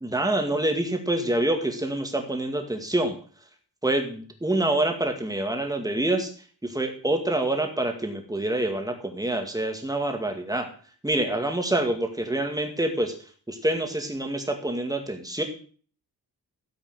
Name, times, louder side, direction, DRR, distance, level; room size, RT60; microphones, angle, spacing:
voice 1, 0.0-3.1 3.8-6.3 6.6-10.7 11.0-13.1 13.5-15.4, right 1 dB, 10° right, 4 dB, 2.0 m, -26 dB
13.5 x 7.9 x 6.1 m, 0.43 s
wide cardioid pair, 155°, 39 cm